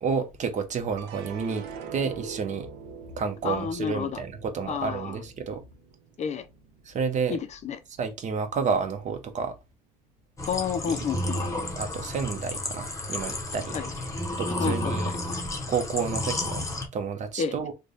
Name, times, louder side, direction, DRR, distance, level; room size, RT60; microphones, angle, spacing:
voice 1, 0.0-2.7 3.2-5.6 6.8-7.4 8.0-9.5 10.8-11.1 11.7-13.8 14.4-15.2 15.7-16.6 16.9-17.7, right 5 dB, 45° right, 0.8 m, -30 dB
sound 1, 1.0-7.4 7.8-8.5, right 6 dB, 90° right, 0.6 m, -44 dB
voice 2, 3.4-4.2 4.7-5.2 6.2-6.5 7.3-7.8 10.5-11.4 13.7-13.9 14.6-15.2 17.4-17.5, left 6 dB, 45° left, 0.5 m, -30 dB
sound 2, 10.4-16.9, left 1 dB, 20° left, 0.8 m, -31 dB
3.2 x 2.2 x 3.8 m
cardioid pair, 110°, 17 cm